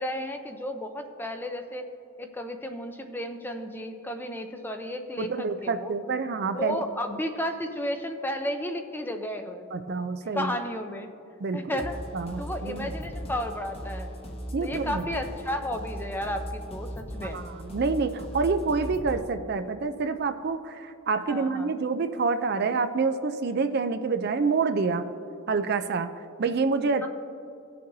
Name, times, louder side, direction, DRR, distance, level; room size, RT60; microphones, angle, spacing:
voice 1, 0.0-1.9 2.2-5.9 6.5-9.7 10.2-11.1 11.5-12.0 12.4-14.2 14.6-17.4 21.3-21.7 27.0-27.1, left 1 dB, 10° left, 5 dB, 0.5 m, -33 dB
voice 2, 5.2-6.8 9.7-10.5 11.4-11.8 12.1-13.0 14.5-15.1 17.2-25.1 25.5-26.1 26.4-27.0, right 4 dB, 45° right, 9 dB, 0.4 m, -27 dB
sound 1, 11.8-19.2, equal, 25° left, 1.0 m, -38 dB
18.5 x 6.6 x 2.7 m, 2.6 s
head